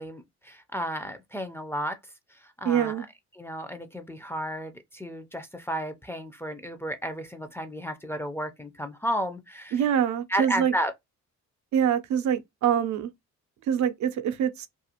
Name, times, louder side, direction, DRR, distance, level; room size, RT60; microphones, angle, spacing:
voice 1, 0.0-2.0 2.3-3.0 3.4-9.8 10.3-10.9, equal, 10° left, 0.4 m, -33 dB
voice 2, 2.6-3.0 9.7-10.7 11.7-13.1 13.7-14.7, right 9 dB, 70° right, 0.6 m, -25 dB
2.4 x 2.4 x 2.8 m
cardioid pair, 90°, 30 cm